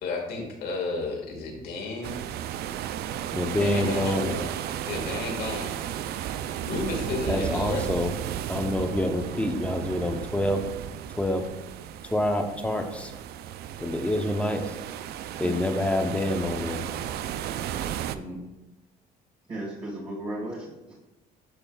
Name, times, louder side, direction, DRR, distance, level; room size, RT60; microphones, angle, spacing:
voice 1, 0.0-2.2 3.6-4.4 4.9-5.7 6.6-7.8, left 3 dB, 70° left, 0 dB, 1.9 m, -32 dB
sound 1, 2.0-18.2, right 10 dB, 70° right, 0.4 m, -34 dB
voice 2, 3.3-4.3 7.3-8.1 8.5-10.6 11.1-11.4 12.0-13.1 13.8-14.8 15.4-16.9, left 1 dB, 5° left, 5 dB, 0.8 m, -27 dB
voice 3, 19.5-20.9, right 1 dB, 35° right, -8 dB, 2.2 m, -35 dB
11.0 x 5.6 x 2.4 m, 1.0 s
cardioid pair, 110°, 17 cm